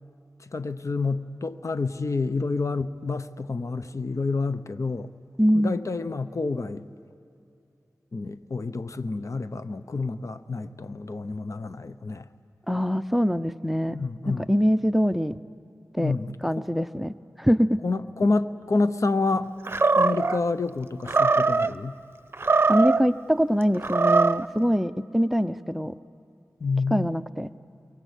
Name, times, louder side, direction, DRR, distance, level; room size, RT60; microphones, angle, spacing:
voice 1, 0.5-5.1 5.5-6.9 8.1-12.3 13.8-14.5 16.0-16.7 17.8-19.5 19.9-22.0 26.6-27.1, left 3 dB, 60° left, 12 dB, 0.9 m, -28 dB
voice 2, 5.4-5.8 12.7-14.0 14.3-15.4 15.9-16.1 16.4-17.8 22.7-25.9 26.9-27.5, equal, 5° right, 13 dB, 0.7 m, -23 dB
Animal, 19.7-20.4 21.1-21.7 22.3-23.1 23.8-24.5, right 4 dB, 40° right, 0.8 m, -21 dB
29.0 x 23.5 x 8.3 m, 2.7 s
cardioid pair, 40°, 6 cm